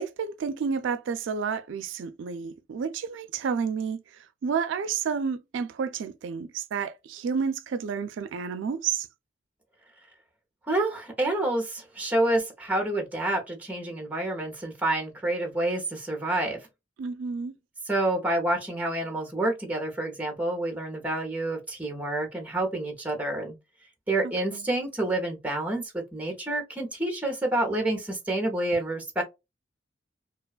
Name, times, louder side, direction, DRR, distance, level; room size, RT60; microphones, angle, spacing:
voice 1, 0.0-9.1 17.0-17.5 24.5-24.6, right 6 dB, 75° right, 0.3 m, -30 dB
voice 2, 10.7-16.6 17.9-23.6 24.1-29.2, right 1 dB, 10° right, 0.7 m, -28 dB
2.8 x 2.2 x 2.3 m
head